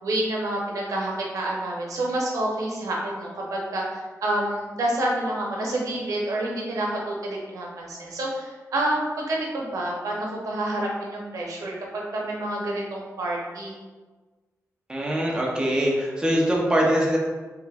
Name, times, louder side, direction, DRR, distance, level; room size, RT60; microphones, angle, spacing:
voice 1, 0.0-13.8, right 1 dB, 85° right, -2 dB, 0.7 m, -28 dB
voice 2, 14.9-17.2, equal, 15° right, -3 dB, 0.6 m, -23 dB
3.0 x 2.4 x 3.3 m, 1.3 s
wide cardioid pair, 120°, 6 cm